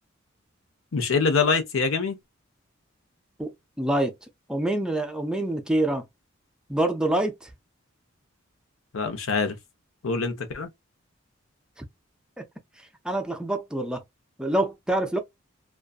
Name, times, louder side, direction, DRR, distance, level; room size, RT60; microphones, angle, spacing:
voice 1, 0.9-2.2 8.9-9.6 10.0-10.7, left 4 dB, 85° left, 0.7 m, -24 dB
voice 2, 3.4-4.1 4.5-6.0 6.7-7.5 11.8-11.9 13.0-14.0 14.4-15.2, right 1 dB, 5° right, 0.4 m, -26 dB
2.5 x 2.2 x 2.4 m
head